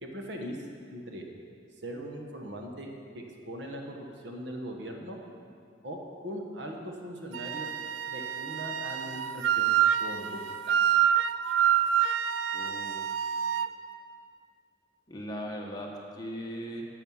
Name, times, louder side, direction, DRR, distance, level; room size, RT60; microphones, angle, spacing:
voice 1, 0.0-1.2 1.8-5.2 5.8-7.7 8.1-10.4 10.7-10.8, equal, 65° right, 2 dB, 1.2 m, -40 dB
Wind instrument woodwind instrument, 7.3-13.7, right 9 dB, 90° right, 0.4 m, -27 dB
voice 2, 12.5-13.1 15.1-16.9, equal, 20° left, -1 dB, 1.2 m, -39 dB
10.5 x 7.8 x 5.6 m, 2.3 s
head